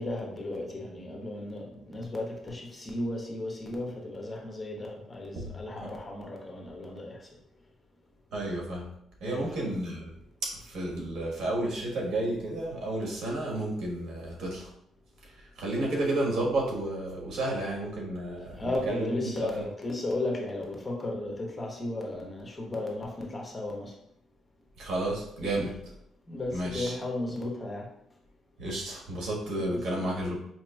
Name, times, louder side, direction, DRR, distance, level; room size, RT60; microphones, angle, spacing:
voice 1, 0.0-7.2 9.2-9.8 18.6-23.9 25.4-25.7 26.3-27.9 29.6-30.1, left 2 dB, 25° left, 0 dB, 0.9 m, -35 dB
voice 2, 8.3-8.9 9.2-10.1 10.4-14.7 15.6-19.5 24.8-25.8 26.5-26.9 28.6-30.3, right 1 dB, 70° right, -2 dB, 1.3 m, -31 dB
4.9 x 2.9 x 2.3 m, 0.72 s
cardioid pair, 90°, 0 cm